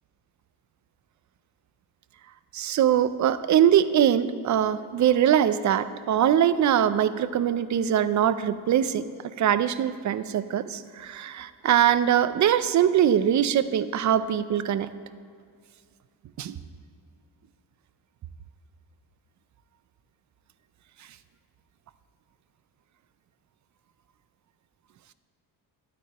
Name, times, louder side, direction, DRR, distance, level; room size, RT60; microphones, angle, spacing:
voice 1, 2.5-9.0 9.4-14.9 16.4-16.5, right 10 dB, 40° right, 14 dB, 0.4 m, -22 dB
12.0 x 9.1 x 2.9 m, 2.2 s
cardioid pair, 110°, 46 cm